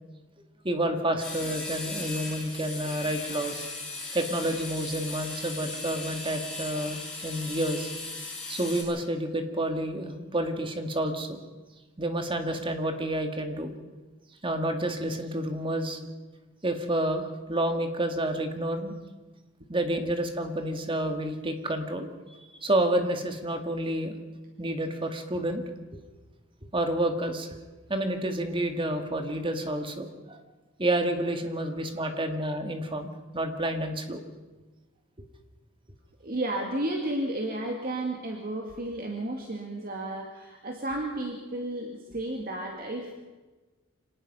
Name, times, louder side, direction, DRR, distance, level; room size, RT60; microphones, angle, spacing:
voice 1, 0.6-3.6 4.1-7.9 8.5-11.4 12.0-13.7 14.4-16.0 16.6-19.0 19.7-22.1 22.4-24.2 24.6-25.6 26.7-27.6 27.9-30.4 30.8-34.2, right 1 dB, 25° right, 5 dB, 2.0 m, -29 dB
sound 1, 1.2-8.8, left 3 dB, 5° left, 7.9 m, -37 dB
voice 2, 31.6-32.2 36.2-43.1, right 1 dB, 45° right, 1 dB, 2.1 m, -33 dB
26.0 x 18.5 x 5.6 m, 1.2 s
head